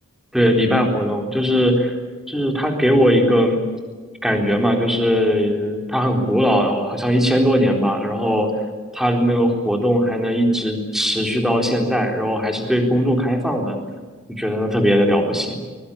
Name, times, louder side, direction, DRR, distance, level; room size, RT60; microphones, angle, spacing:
voice 1, 0.3-1.9 2.3-3.6 4.2-8.5 8.9-13.8 14.3-15.6, equal, ahead, 2 dB, 4.0 m, -19 dB
24.0 x 22.5 x 8.7 m, 1.4 s
head